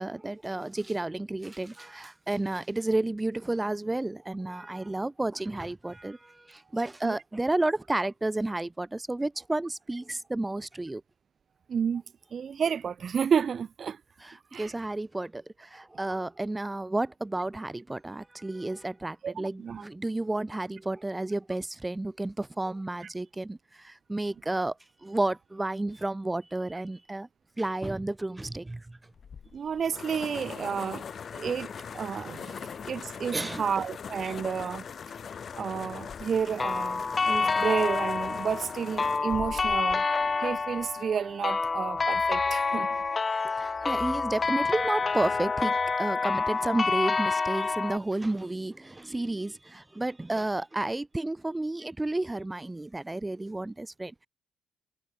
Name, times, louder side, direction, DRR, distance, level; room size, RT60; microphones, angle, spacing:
voice 1, 0.0-11.0 14.2-24.7 25.0-27.3 27.6-29.0 33.3-33.6 43.3-54.3, right 2 dB, 15° right, 3.5 m, -31 dB
voice 2, 11.7-12.0 12.3-14.0 14.5-14.7 16.1-16.2 19.2-19.8 23.0-23.1 29.5-31.0 31.3-34.8 35.5-40.0 40.4-42.9, right 7 dB, 50° right, 1.2 m, -31 dB
sound 1, 29.1-41.0, left 7 dB, 50° left, 5.9 m, -41 dB
sound 2, 36.6-48.0, left 4 dB, 30° left, 3.2 m, -28 dB
cardioid pair, 90°, 0 cm